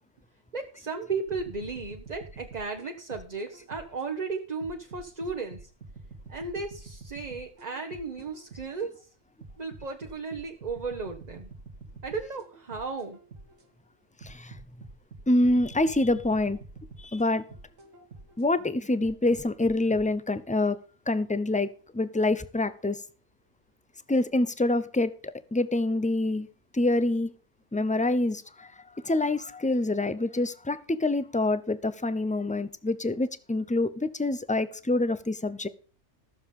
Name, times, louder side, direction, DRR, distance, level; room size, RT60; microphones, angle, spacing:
voice 1, 0.5-5.7 6.3-9.0 9.6-11.5 12.0-13.2, right 4 dB, 35° right, 3 dB, 1.2 m, -35 dB
sound 1, 1.3-4.1 4.6-8.9 9.4-13.7 14.2-18.5 19.0-20.1, right 3 dB, 75° right, 2.0 m, -47 dB
voice 2, 14.2-14.6 15.3-16.6 17.0-17.4 18.4-20.8 21.1-23.0 24.1-26.5 26.7-27.3 27.7-28.7 29.0-35.7, left 2 dB, 10° left, 14 dB, 0.4 m, -26 dB
14.5 x 7.2 x 5.3 m, 0.40 s
omnidirectional pair, 1.3 m